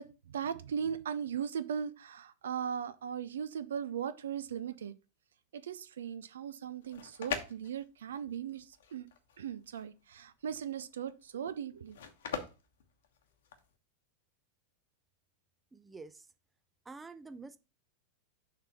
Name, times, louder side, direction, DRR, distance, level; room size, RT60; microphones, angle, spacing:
voice 1, 0.0-4.9 5.5-9.1 9.4-12.0, right 8 dB, 65° right, 0.4 m, -38 dB
sound 1, 6.7-13.7, left 7 dB, 60° left, 1.0 m, -43 dB
voice 2, 15.7-16.2 16.9-17.6, right 3 dB, 10° right, 0.5 m, -47 dB
6.6 x 3.5 x 5.8 m
figure-of-eight pair, 90°, 0 cm